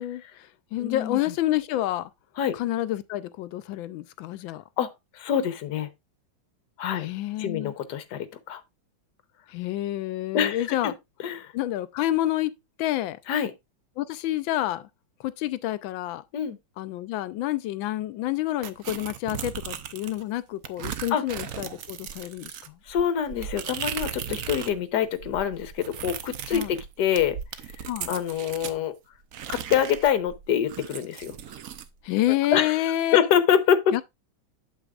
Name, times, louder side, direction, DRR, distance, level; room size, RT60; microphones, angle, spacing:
voice 1, 0.0-2.1 2.5-4.6 7.0-7.7 9.5-10.9 11.5-13.2 14.0-14.9 15.2-16.2 16.8-22.8 26.5-26.7 27.9-28.1 32.0-33.3 33.9-34.0, left 14 dB, 80° left, 1.3 m, -28 dB
voice 2, 0.8-1.3 2.4-2.6 4.8-4.9 5.1-5.9 6.8-7.1 7.4-8.6 10.3-10.9 11.2-11.5 13.3-13.5 16.3-16.6 21.1-21.2 22.9-27.4 28.1-29.0 29.5-31.4 32.5-32.8 33.1-33.9, left 9 dB, 65° left, 1.4 m, -25 dB
sound 1, 18.6-20.2 20.6-24.8 25.1-28.8 29.3-31.9, right 9 dB, 70° right, 0.8 m, -37 dB
8.4 x 7.5 x 2.4 m
omnidirectional pair, 2.1 m